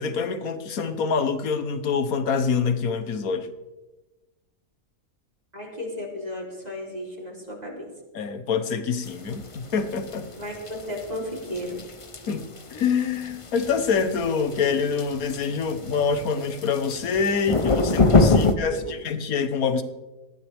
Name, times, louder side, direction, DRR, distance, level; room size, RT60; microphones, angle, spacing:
voice 1, 0.0-3.5 8.1-10.3 12.3-12.4 12.7-19.8, left 5 dB, 75° left, 10 dB, 1.5 m, -26 dB
voice 2, 5.5-7.9 10.4-11.8 18.4-19.0, left 1 dB, 25° right, -2 dB, 3.6 m, -34 dB
sound 1, 9.1-18.5, left 3 dB, 30° left, 0.7 m, -25 dB
19.5 x 14.5 x 3.5 m, 1.1 s
omnidirectional pair, 1.5 m